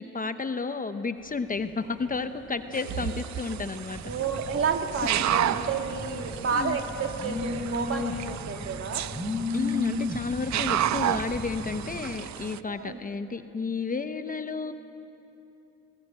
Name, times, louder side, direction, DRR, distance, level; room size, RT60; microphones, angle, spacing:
voice 1, 0.0-4.0 6.5-6.8 9.5-14.7, left 4 dB, 30° left, 9 dB, 0.9 m, -32 dB
sound 1, 1.2-10.0, right 1 dB, 25° right, 4.4 m, -51 dB
sound 2, 2.7-12.6, right 11 dB, 65° right, 0.6 m, -32 dB
Telephone, 3.9-12.0, left 3 dB, 10° right, 3.2 m, -35 dB
voice 2, 4.0-9.1 12.7-13.0, right 5 dB, 45° right, 4 dB, 2.1 m, -30 dB
19.5 x 17.0 x 9.0 m, 2.9 s
cardioid pair, 90°, 30 cm